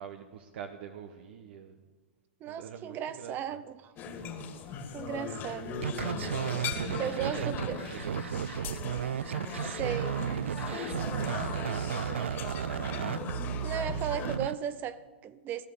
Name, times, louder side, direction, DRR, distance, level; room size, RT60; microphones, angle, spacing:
voice 1, 0.0-1.8 2.5-3.6 4.0-4.5 6.5-7.5 7.8-8.9 12.1-12.7, right 8 dB, 65° right, 1.2 m, -45 dB
voice 2, 2.4-3.9 4.9-5.8 6.7-7.8 9.6-10.2 10.7-11.2 13.6-15.7, right 9 dB, 30° right, 0.7 m, -36 dB
sound 1, 4.0-14.4, left 6 dB, 35° left, 2.4 m, -39 dB
sound 2, 5.8-14.5, right 9 dB, 85° right, 0.4 m, -34 dB
17.0 x 11.0 x 6.9 m
hypercardioid pair, 125°, 6 cm